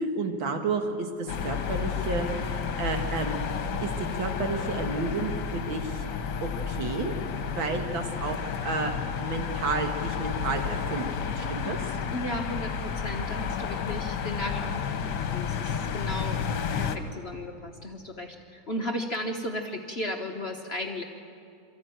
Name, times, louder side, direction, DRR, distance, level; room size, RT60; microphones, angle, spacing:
voice 1, 0.0-3.4 3.8-6.0 6.4-7.1 7.4-11.9, right 3 dB, 80° right, 4 dB, 2.3 m, -31 dB
sound 1, 1.3-17.0, left 6 dB, 65° left, 1.6 m, -31 dB
voice 2, 12.1-14.9 15.3-16.4 16.7-21.0, left 1 dB, 40° left, 3 dB, 1.0 m, -35 dB
23.5 x 14.0 x 9.1 m, 2.6 s
omnidirectional pair, 2.1 m